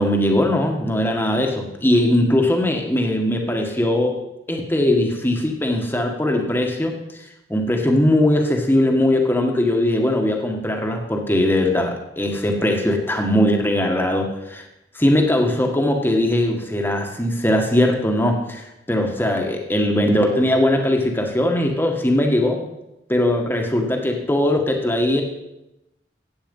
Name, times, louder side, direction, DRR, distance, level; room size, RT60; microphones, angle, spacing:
voice 1, 0.0-4.2 4.5-6.9 7.5-14.6 15.0-22.6 23.1-25.2, left 1 dB, 10° left, 2 dB, 1.7 m, -20 dB
15.5 x 8.9 x 5.5 m, 0.91 s
head